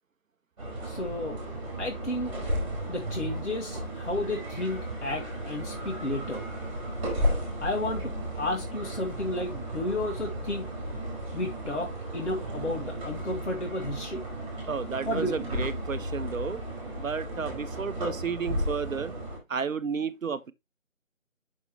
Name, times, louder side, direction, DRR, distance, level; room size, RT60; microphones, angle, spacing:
sound 1, 0.6-19.4, right 1 dB, 25° right, 4.3 m, -34 dB
voice 1, 0.8-1.4 1.8-2.4 2.9-6.4 7.6-10.7 11.3-14.2 15.0-15.5, left 1 dB, 60° left, 1.7 m, -32 dB
voice 2, 14.7-16.6 17.0-19.1 19.5-20.5, right 6 dB, 70° right, 0.7 m, -32 dB
7.0 x 6.2 x 3.1 m
figure-of-eight pair, 165°, 41 cm